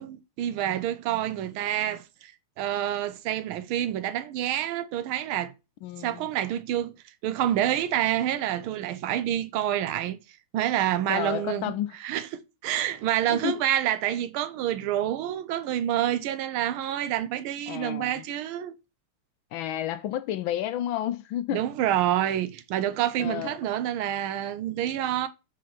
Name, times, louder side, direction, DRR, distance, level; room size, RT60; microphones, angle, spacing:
voice 1, 0.0-2.3 2.6-5.5 6.0-6.9 7.2-10.2 10.5-11.7 12.0-18.8 21.5-25.3, right 11 dB, 80° right, 1.4 m, -28 dB
voice 2, 5.8-6.3 11.1-12.0 13.3-13.6 17.7-18.2 19.5-21.6 23.2-23.5, left 12 dB, 75° left, 1.3 m, -31 dB
4.8 x 4.2 x 5.8 m
omnidirectional pair, 2.4 m